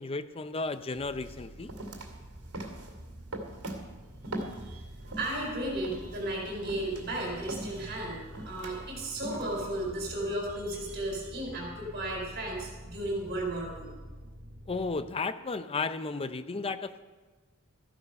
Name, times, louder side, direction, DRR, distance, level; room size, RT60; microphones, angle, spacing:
voice 1, 0.0-1.7 14.7-17.0, left 3 dB, 25° left, 12 dB, 0.5 m, -34 dB
sound 1, 0.7-0.8 1.2-5.5 5.8-9.8, right 1 dB, 80° right, 2.3 m, -41 dB
sound 2, 0.9-14.9, equal, 10° right, 2.8 m, -47 dB
voice 2, 4.3-13.9, right 1 dB, 45° right, -1 dB, 4.5 m, -35 dB
14.0 x 11.0 x 5.4 m, 1.3 s
head